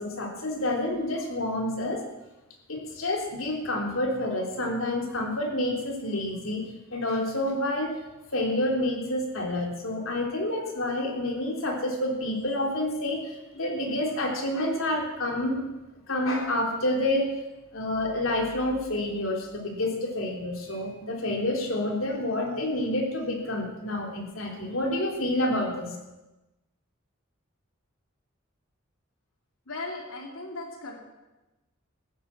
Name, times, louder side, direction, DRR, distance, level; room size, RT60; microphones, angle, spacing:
voice 1, 0.0-2.0 2.7-6.6 6.9-7.9 8.3-15.6 16.1-17.3 17.7-25.9, left 1 dB, 75° left, 1 dB, 3.3 m, -28 dB
voice 2, 29.7-31.0, left 2 dB, 90° left, 1 dB, 2.7 m, -37 dB
14.5 x 11.0 x 7.4 m, 1.0 s
head